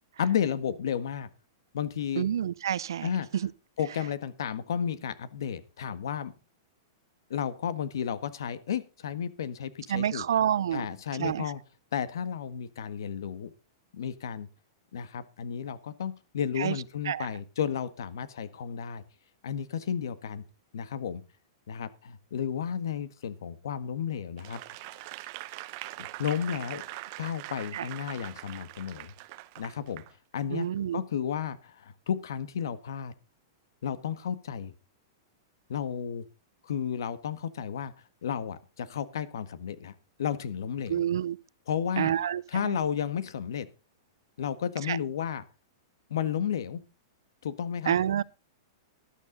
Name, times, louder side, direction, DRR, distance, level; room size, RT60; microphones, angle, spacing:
voice 1, 0.2-1.3 1.7-2.3 3.0-3.3 3.8-6.3 7.3-10.2 10.7-11.6 11.9-13.5 13.9-14.5 14.9-19.0 19.4-20.4 20.7-21.2 21.7-24.6 26.0-26.8 27.2-29.1 29.6-30.0 30.3-30.7 30.9-33.1 33.8-34.7 35.7-36.2 36.6-37.9 38.2-41.0 41.7-42.1 42.5-43.7 44.4-45.4 46.1-46.8 47.4-48.0, left 8 dB, 75° left, 1.5 m, -32 dB
voice 2, 2.2-3.5 9.9-10.9 11.2-11.4 16.6-16.8 17.1-17.3 27.7-27.9 30.5-31.0 40.9-41.4 42.0-42.8 44.9-45.0 47.9-48.2, right 10 dB, 85° right, 0.6 m, -28 dB
Applause / Crowd, 24.4-30.1 30.6-30.8, right 19 dB, 35° right, 0.8 m, -42 dB
13.0 x 12.0 x 4.0 m
supercardioid pair, 170°, 2 cm